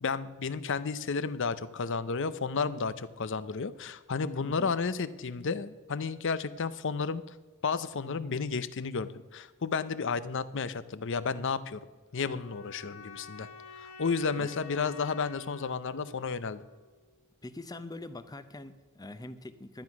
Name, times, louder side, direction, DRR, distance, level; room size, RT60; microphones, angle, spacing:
voice 1, 0.0-7.2 7.6-11.8 12.1-13.5 13.8-16.6, left 5 dB, 60° left, 15 dB, 0.6 m, -32 dB
sound 1, 12.1-17.1, left 4 dB, 75° left, 1.0 m, -49 dB
voice 2, 17.4-19.8, left 2 dB, 20° left, 12 dB, 0.6 m, -43 dB
12.0 x 9.4 x 5.9 m, 1.2 s
head